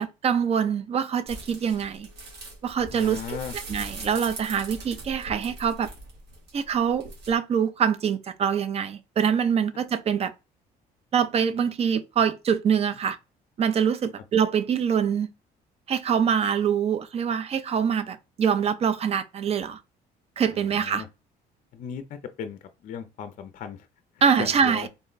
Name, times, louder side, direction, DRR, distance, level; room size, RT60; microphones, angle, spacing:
voice 1, 0.0-2.1 2.6-3.4 3.7-5.9 6.5-10.3 11.1-13.2 13.6-15.3 15.9-19.8 20.4-21.0 24.2-24.9, right 7 dB, 40° right, 0.4 m, -24 dB
sound 1, 1.3-7.3, right 2 dB, 85° right, 1.5 m, -41 dB
voice 2, 2.9-3.5 20.8-21.1 21.7-23.9 24.4-24.9, left 7 dB, 50° left, 0.4 m, -36 dB
3.6 x 2.1 x 3.8 m
cardioid pair, 110°, 17 cm